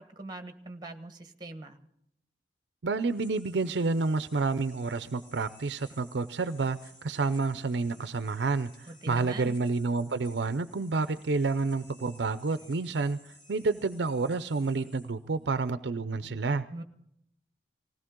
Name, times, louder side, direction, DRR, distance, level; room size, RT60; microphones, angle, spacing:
voice 1, 0.0-1.8 8.9-9.6 16.7-16.8, right 2 dB, 20° right, 8 dB, 1.3 m, -42 dB
voice 2, 2.8-13.2 13.5-16.6, right 3 dB, 70° right, 13 dB, 0.6 m, -29 dB
sound 1, 2.9-15.7, left 1 dB, 25° left, 2.5 m, -57 dB
19.5 x 17.0 x 3.7 m, 0.71 s
head